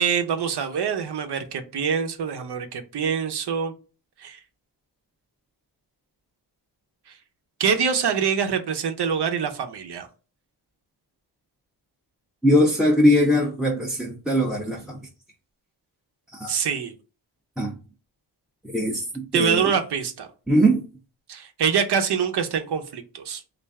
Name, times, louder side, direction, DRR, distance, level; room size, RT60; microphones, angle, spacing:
voice 1, 0.0-3.7 4.2-4.4 7.1-7.2 7.6-10.1 16.5-16.9 19.3-20.3 21.3-23.4, right 7 dB, 65° right, 0.7 m, -25 dB
voice 2, 12.4-15.0 16.3-16.5 17.6-17.7 18.7-19.7 20.5-20.8, equal, ahead, 0.5 m, -21 dB
3.2 x 2.5 x 3.5 m
wide cardioid pair, 125°, 44 cm